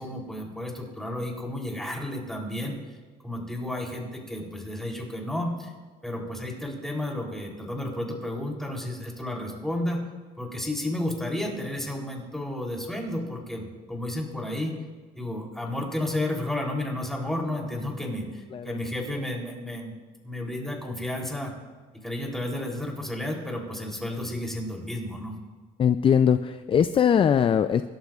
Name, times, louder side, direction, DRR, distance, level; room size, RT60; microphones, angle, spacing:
voice 1, 0.0-2.8 3.2-5.7 6.0-10.0 10.4-14.7 15.1-19.9 20.2-21.5 22.0-25.3, left 1 dB, ahead, -1 dB, 3.3 m, -32 dB
voice 2, 3.4-3.9 18.5-18.8 25.8-27.8, left 8 dB, 30° left, 11 dB, 0.4 m, -22 dB
25.5 x 12.0 x 2.4 m, 1.4 s
cardioid pair, 110°, 17 cm